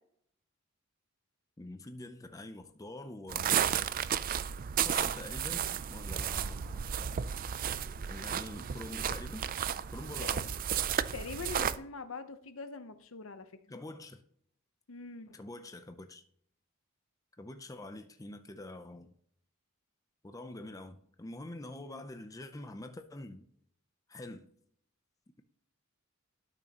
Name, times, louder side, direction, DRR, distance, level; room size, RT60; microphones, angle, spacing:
voice 1, 1.6-3.6 4.8-6.9 8.1-9.5 9.9-10.5 13.7-14.2 15.3-16.2 17.4-19.1 20.2-23.5 24.1-24.5, left 2 dB, 15° left, 0.5 m, -45 dB
sound 1, 3.3-11.8, right 9 dB, 40° right, 0.4 m, -33 dB
voice 2, 11.1-13.8 14.9-15.4 21.7-22.0, left 4 dB, 75° left, 0.8 m, -44 dB
12.0 x 6.3 x 2.9 m
head